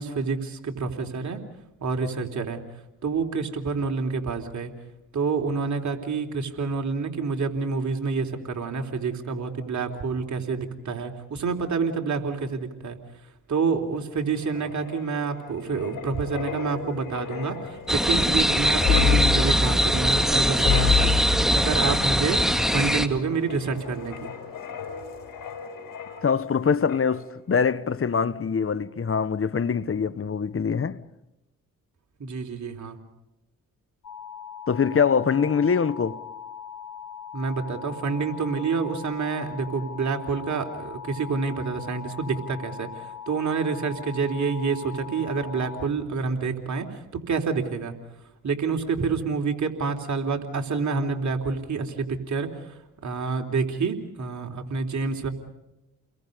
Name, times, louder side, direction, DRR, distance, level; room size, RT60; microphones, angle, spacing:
voice 1, 0.0-1.4 1.8-2.6 3.0-4.7 5.1-13.0 13.5-24.3 32.2-33.0 37.3-47.9 48.4-52.5 53.0-55.3, right 4 dB, 60° right, 3.6 m, -28 dB
Wind, 14.2-26.6 26.9-27.1, left 5 dB, 80° left, 4.5 m, -29 dB
sound 1, 17.9-23.1, equal, ahead, 2.4 m, -22 dB
voice 2, 26.2-31.0 34.7-36.2, left 6 dB, 40° left, 1.3 m, -23 dB
sound 2, 34.0-45.9, left 8 dB, 60° left, 1.7 m, -40 dB
30.0 x 22.0 x 5.3 m
supercardioid pair, 50°, 33 cm